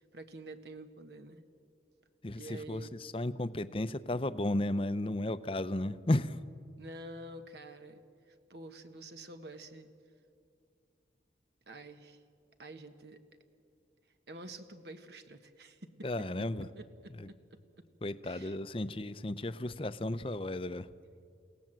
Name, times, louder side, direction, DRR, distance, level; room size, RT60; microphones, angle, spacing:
voice 1, 0.1-1.4 2.4-2.9 6.8-8.0 8.5-9.9 11.7-12.2 12.6-13.2 14.3-16.1 16.8-16.9 18.2-18.6, right 2 dB, 65° right, 8 dB, 1.2 m, -48 dB
voice 2, 2.2-6.4 16.0-16.7 17.2-17.3 18.0-20.9, left 1 dB, 30° left, 13 dB, 0.6 m, -34 dB
29.5 x 17.0 x 7.6 m, 2.3 s
head